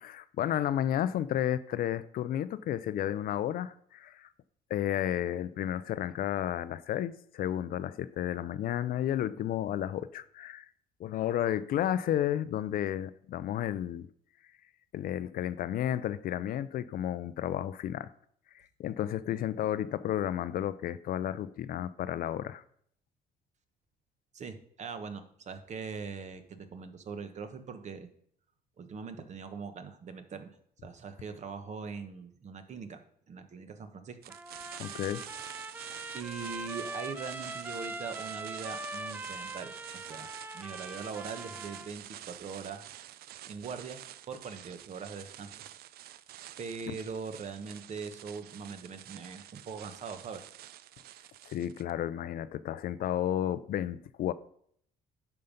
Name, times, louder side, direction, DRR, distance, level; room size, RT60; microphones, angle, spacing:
voice 1, 0.0-4.3 4.7-10.6 11.0-14.1 14.9-18.1 18.8-22.6 34.8-35.2 51.5-54.3, left 11 dB, 60° left, 0.5 m, -32 dB
voice 2, 24.3-28.1 28.8-30.6 30.8-33.0 33.3-34.3 36.1-40.3 40.5-42.9 43.5-44.0 44.3-45.5 46.6-50.5, right 5 dB, 45° right, 1.1 m, -41 dB
sound 1, 34.2-51.9, right 13 dB, 65° right, 0.5 m, -48 dB
Trumpet, 34.3-41.9, right 2 dB, 10° right, 0.5 m, -42 dB
9.6 x 5.5 x 5.2 m
cardioid pair, 110°, 17 cm